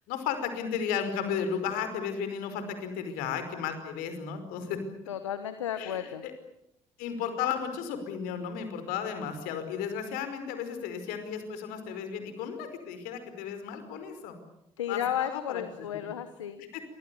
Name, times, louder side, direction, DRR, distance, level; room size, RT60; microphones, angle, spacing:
voice 1, 0.1-4.8 5.8-6.3 7.0-14.4 14.9-16.1 16.7-16.8, left 7 dB, 75° left, 9 dB, 5.2 m, -34 dB
voice 2, 5.1-6.2 14.8-16.6, left 10 dB, 90° left, 11 dB, 1.3 m, -33 dB
28.5 x 25.0 x 7.1 m, 0.80 s
hypercardioid pair, 50°, 15 cm